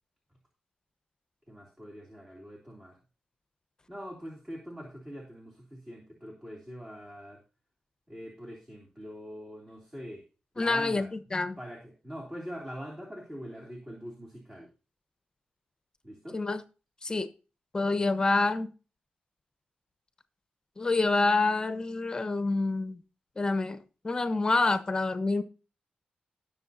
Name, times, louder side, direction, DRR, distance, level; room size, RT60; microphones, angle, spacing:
voice 1, 1.5-3.0 3.9-7.4 8.1-10.2 10.5-11.1 11.6-14.7 16.0-16.4, equal, 15° right, 3.1 m, -43 dB
voice 2, 10.6-11.6 16.3-16.6 17.0-17.3 17.7-18.7 20.8-23.0 23.4-23.8 24.0-25.4, left 3 dB, 25° left, 1.2 m, -27 dB
19.5 x 6.8 x 2.8 m
wide cardioid pair, 135°, 3 cm